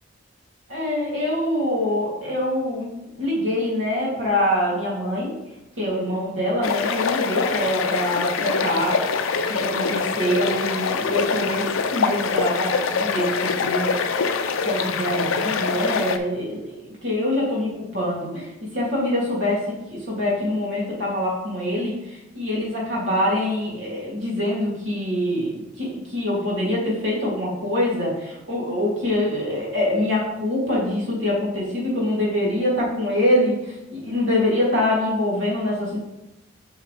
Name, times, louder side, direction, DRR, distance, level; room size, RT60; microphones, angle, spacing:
voice 1, 0.7-2.9 3.2-5.3 5.8-9.0 9.5-14.0 14.6-16.7 17.0-36.0, left 1 dB, 65° right, -5 dB, 2.7 m, -24 dB
sound 1, 6.6-16.2, left 5 dB, 90° left, 0.5 m, -24 dB
7.3 x 5.6 x 3.3 m, 0.92 s
head